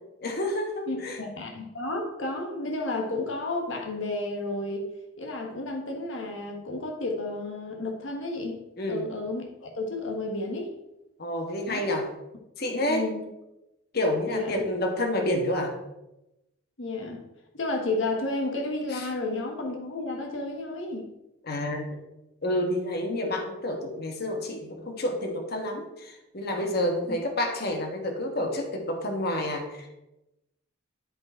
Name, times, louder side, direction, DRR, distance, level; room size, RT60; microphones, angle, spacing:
voice 1, 0.2-1.2 8.8-9.1 11.2-12.1 12.6-13.1 13.9-15.7 18.9-19.1 21.4-22.0 22.4-29.9, left 1 dB, 50° left, 3 dB, 1.2 m, -29 dB
voice 2, 0.9-8.6 8.9-10.7 11.7-11.9 12.9-13.3 14.3-14.6 16.8-17.2 17.5-21.1 27.1-27.2, left 2 dB, 70° left, 2 dB, 1.2 m, -32 dB
10.5 x 5.1 x 4.4 m, 0.94 s
head